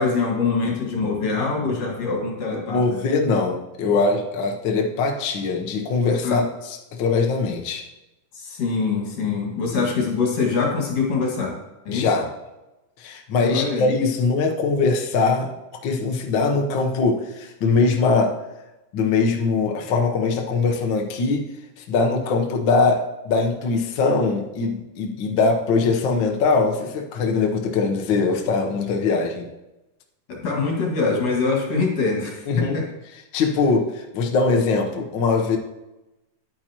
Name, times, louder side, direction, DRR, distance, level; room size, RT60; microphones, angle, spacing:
voice 1, 0.0-3.0 6.2-6.4 8.3-11.6 11.9-12.1 13.4-14.0 30.3-32.9, left 4 dB, 60° left, -1 dB, 3.0 m, -24 dB
voice 2, 2.7-7.9 9.7-9.8 11.9-12.3 13.0-15.5 15.8-18.4 18.9-21.5 21.8-29.5 32.5-32.7 33.3-35.6, left 4 dB, 80° left, 2 dB, 1.0 m, -22 dB
10.0 x 9.0 x 2.9 m, 0.98 s
omnidirectional pair, 3.4 m